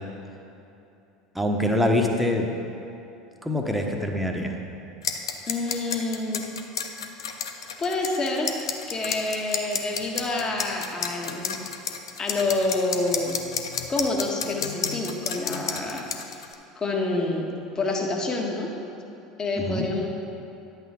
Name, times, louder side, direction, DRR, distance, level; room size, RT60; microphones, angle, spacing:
voice 1, 1.3-2.5 3.4-4.5 19.6-19.9, left 1 dB, ahead, 1 dB, 1.2 m, -24 dB
sound 1, 5.0-16.5, left 7 dB, 80° left, 0.6 m, -31 dB
voice 2, 5.5-6.4 7.8-8.5 8.9-11.6 12.2-13.4 13.9-16.4 16.7-18.7 19.4-20.1, left 2 dB, 25° left, 0 dB, 1.6 m, -28 dB
10.5 x 8.2 x 3.8 m, 2.9 s
hypercardioid pair, 75°, 3 cm